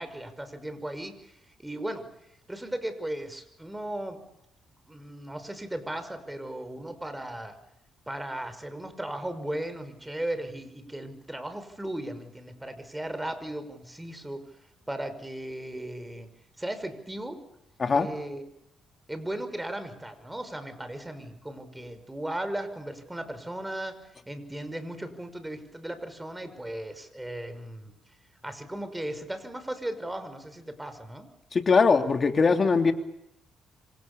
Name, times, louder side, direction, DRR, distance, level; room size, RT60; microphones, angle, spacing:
voice 1, 0.0-2.1 2.5-4.2 4.9-7.6 8.1-14.5 14.9-16.3 16.6-17.4 17.9-18.4 19.1-24.0 24.3-27.9 28.4-31.3, right 1 dB, 10° right, 10 dB, 5.6 m, -36 dB
voice 2, 31.5-32.9, left 4 dB, 40° left, 6 dB, 3.1 m, -21 dB
28.0 x 26.0 x 7.0 m, 0.81 s
cardioid pair, 90°, 0 cm